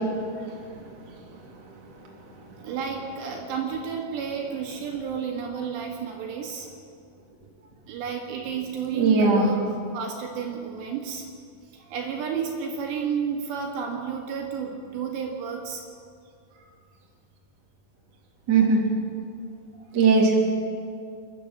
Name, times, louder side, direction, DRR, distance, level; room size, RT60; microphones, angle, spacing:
voice 1, 2.6-6.7 7.9-9.6 9.9-11.2 11.9-15.8, right 6 dB, 65° right, 0 dB, 3.9 m, -31 dB
voice 2, 8.9-9.5 18.5-18.8 19.9-20.5, right 4 dB, 25° right, -2 dB, 2.8 m, -19 dB
29.0 x 12.0 x 7.5 m, 2.3 s
omnidirectional pair, 5.7 m